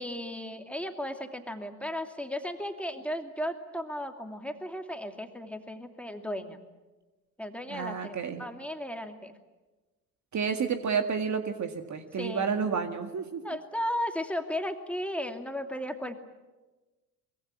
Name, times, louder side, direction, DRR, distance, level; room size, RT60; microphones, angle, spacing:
voice 1, 0.0-6.6 7.4-9.3 12.2-12.5 13.4-16.1, left 1 dB, 5° left, 5 dB, 2.6 m, -35 dB
voice 2, 7.7-8.4 10.3-13.4, right 6 dB, 35° right, 7 dB, 1.9 m, -30 dB
24.0 x 22.0 x 8.7 m, 1.2 s
hypercardioid pair, 60°, 46 cm